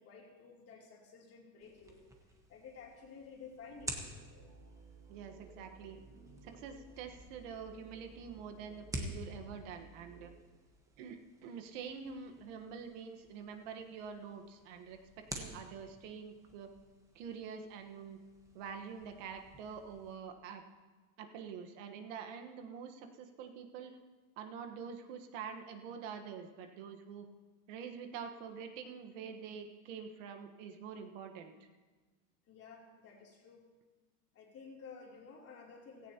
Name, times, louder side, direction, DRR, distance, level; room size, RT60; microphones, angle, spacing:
voice 1, 0.0-2.0 2.5-4.0 32.5-33.6 34.3-36.1, left 5 dB, 35° left, -1 dB, 3.0 m, -53 dB
sound 1, 1.6-20.2, right 1 dB, 10° right, 1.2 m, -50 dB
sound 2, 3.7-10.3, right 3 dB, 45° right, 4.0 m, -57 dB
voice 2, 5.1-6.0 6.4-10.3 11.0-16.7 17.1-18.2 18.5-20.6 21.2-24.0 24.4-27.3 27.7-31.5, right 6 dB, 65° right, 5 dB, 1.4 m, -46 dB
16.5 x 15.0 x 2.9 m, 1.3 s
supercardioid pair, 135°, 41 cm